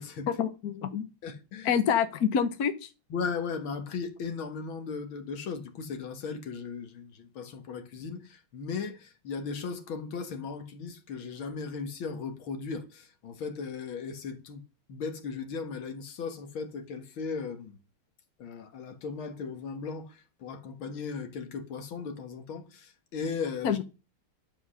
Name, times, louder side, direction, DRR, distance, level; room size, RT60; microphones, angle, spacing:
voice 1, 0.4-1.1 1.6-2.9 23.6-23.8, left 7 dB, 55° left, 1.4 m, -27 dB
voice 2, 1.2-1.7 3.1-14.6 14.9-17.8 18.4-23.8, left 5 dB, 80° left, 2.3 m, -37 dB
12.0 x 7.9 x 6.3 m
omnidirectional pair, 2.2 m